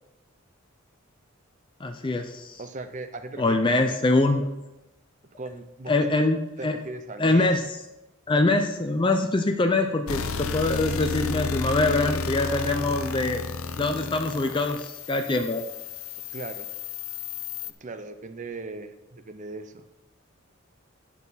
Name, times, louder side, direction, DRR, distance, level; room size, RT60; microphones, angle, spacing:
voice 1, 1.8-2.6 3.4-4.5 5.9-6.4 6.6-6.8 7.2-7.6 8.3-13.4 13.8-15.6, left 2 dB, 25° left, 5 dB, 0.5 m, -24 dB
voice 2, 2.6-4.0 5.4-6.3 6.6-7.5 16.3-16.7 17.6-19.8, right 3 dB, 35° right, 9 dB, 0.6 m, -38 dB
sound 1, 10.1-17.7, left 4 dB, 80° left, 0.7 m, -32 dB
10.5 x 7.3 x 4.1 m, 0.99 s
head